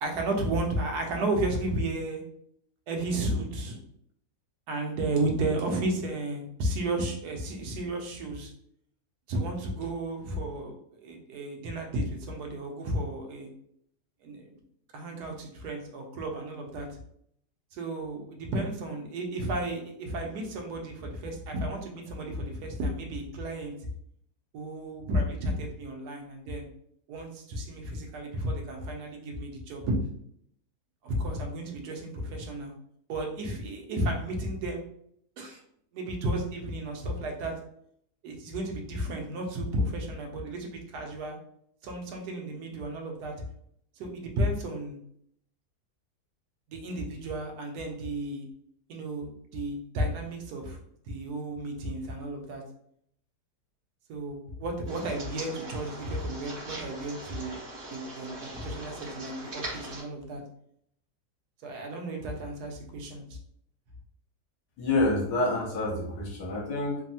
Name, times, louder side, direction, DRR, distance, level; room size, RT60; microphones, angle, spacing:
voice 1, 0.0-2.2 2.9-3.8 4.7-8.5 9.3-13.5 14.2-14.6 14.9-17.0 17.7-23.7 24.5-26.7 27.1-30.0 31.0-32.7 33.1-34.8 35.4-35.6 35.9-37.6 38.2-41.4 41.8-43.3 44.0-45.0 46.7-48.4 48.9-50.8 51.0-52.6 54.1-57.6 57.9-60.4 61.6-63.2, right 1 dB, 75° right, 2 dB, 1.1 m, -33 dB
sound 1, 54.9-60.0, right 1 dB, 45° right, 1.3 m, -41 dB
voice 2, 64.8-67.0, left 2 dB, 75° left, -2 dB, 1.3 m, -27 dB
3.2 x 2.0 x 2.7 m, 0.68 s
omnidirectional pair, 1.8 m